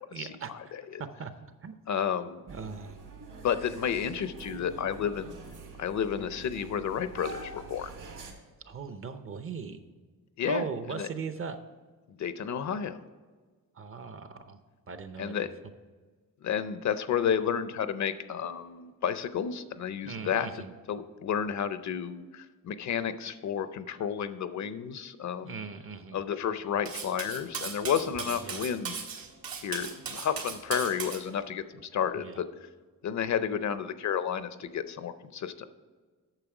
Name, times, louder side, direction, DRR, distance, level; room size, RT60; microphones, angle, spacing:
voice 1, 0.1-0.7 1.2-1.3 1.6-1.8 2.5-3.0 8.6-9.8 10.4-11.6 13.7-14.6 14.9-15.5 20.0-20.8 25.4-26.2 28.4-28.7 32.1-32.4, right 5 dB, 40° right, 10 dB, 0.6 m, -39 dB
voice 2, 1.9-2.4 3.4-5.4 5.8-7.9 10.4-10.6 11.0-11.1 12.1-13.0 15.2-15.5 16.4-25.6 26.1-28.9 29.6-32.4 33.0-35.7, left 8 dB, 55° left, 12 dB, 0.5 m, -31 dB
sound 1, 2.5-8.3, right 4 dB, 65° right, 1.8 m, -45 dB
Cutlery silverware, 26.9-31.2, right 6 dB, 85° right, 1.6 m, -37 dB
9.0 x 6.5 x 4.8 m, 1.4 s
wide cardioid pair, 160°, 34 cm